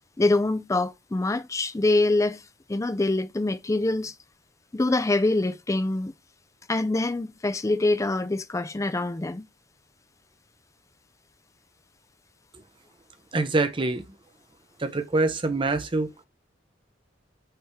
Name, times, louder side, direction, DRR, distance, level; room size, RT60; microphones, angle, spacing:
voice 1, 0.2-2.4 2.7-4.1 4.7-6.1 6.7-9.4, left 2 dB, 15° left, 0.4 m, -25 dB
voice 2, 13.3-14.0 14.8-16.3, right 3 dB, 25° right, 0.6 m, -25 dB
5.6 x 3.5 x 5.6 m
head